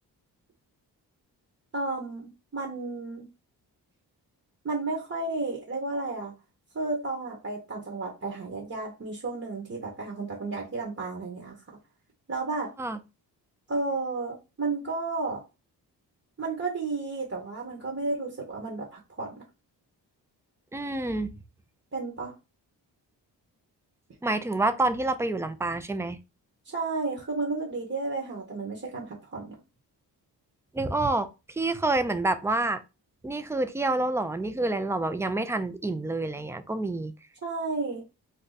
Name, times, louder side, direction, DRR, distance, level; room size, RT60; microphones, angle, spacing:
voice 1, 1.7-3.3 4.6-6.3 6.7-11.8 12.3-12.7 13.7-15.4 16.4-19.4 21.9-22.3 26.6-29.6 37.4-38.0, right 3 dB, 35° right, 1.1 m, -32 dB
voice 2, 20.7-21.3 24.2-26.2 30.7-32.8 33.2-37.1, right 2 dB, 5° right, 0.4 m, -28 dB
2.6 x 2.1 x 4.0 m
supercardioid pair, 55°, 44 cm